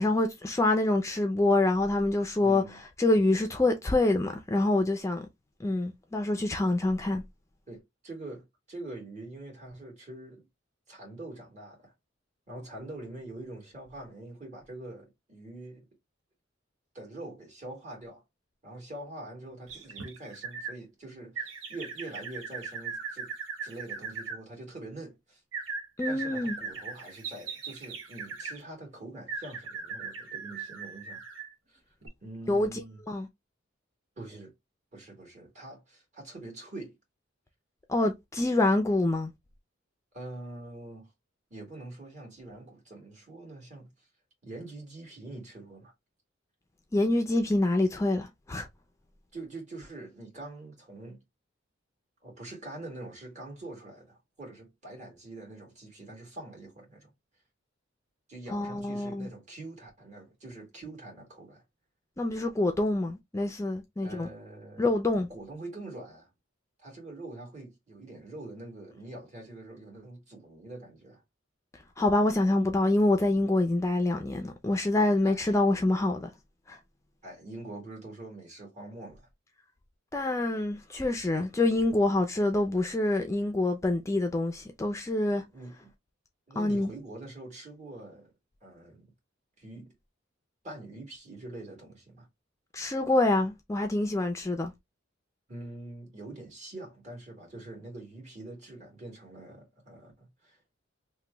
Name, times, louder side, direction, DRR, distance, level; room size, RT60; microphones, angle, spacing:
voice 1, 0.0-2.6 3.0-5.3 5.6-7.2 26.0-26.6 32.5-32.7 33.1-33.3 37.9-39.3 46.9-48.7 58.5-59.3 62.2-64.3 64.8-65.3 72.0-76.3 76.7-76.8 80.1-85.4 86.6-86.9 92.7-94.7, left 2 dB, 15° left, 0.4 m, -26 dB
voice 2, 2.4-2.8 7.7-10.5 10.9-11.9 12.5-15.9 16.9-18.2 18.6-23.3 23.6-25.4 26.1-31.2 31.7-31.8 32.2-33.0 34.2-34.5 34.9-37.0 40.1-41.1 41.5-43.9 44.4-45.9 49.3-51.2 52.2-57.1 58.3-61.6 64.0-66.3 66.8-71.2 75.2-75.6 77.2-79.3 85.3-85.9 86.5-88.3 88.6-89.1 89.6-89.9 90.6-92.3 95.5-100.6, right 2 dB, 40° right, 1.6 m, -44 dB
sound 1, 19.7-20.8 21.3-24.4 25.5-28.6 29.3-31.5 32.0-32.1, right 5 dB, 85° right, 0.9 m, -39 dB
3.0 x 2.2 x 3.3 m
head